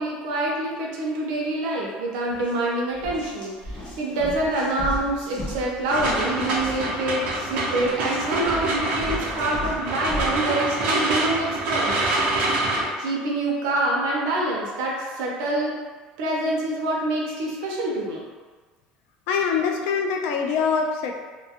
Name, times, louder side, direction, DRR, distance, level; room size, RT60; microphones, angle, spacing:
voice 1, 0.0-11.9 13.0-15.8 16.2-18.2, right 1 dB, 90° right, -3 dB, 0.5 m, -26 dB
sound 1, 2.3-2.5 2.9-10.4, left 1 dB, 35° left, 0.9 m, -36 dB
sound 2, 5.9-12.8, right 2 dB, 50° right, 0.6 m, -26 dB
voice 2, 19.3-21.1, left 6 dB, 75° left, 3 dB, 0.3 m, -24 dB
2.5 x 2.2 x 2.8 m, 1.4 s
cardioid pair, 160°, 3 cm